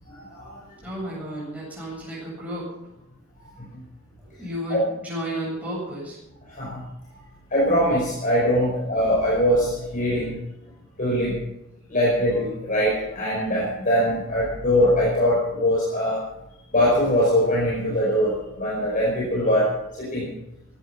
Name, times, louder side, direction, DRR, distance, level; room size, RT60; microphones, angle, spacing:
voice 1, 0.1-0.6 3.6-3.7 4.7-4.8 6.5-6.8 7.5-10.3 11.0-11.4 11.9-16.2 16.7-19.7 20.0-20.3, equal, 40° left, -5 dB, 5.2 m, -22 dB
voice 2, 0.8-2.7 4.2-6.2, equal, 5° right, -6 dB, 7.8 m, -32 dB
17.5 x 14.0 x 5.7 m, 0.91 s
head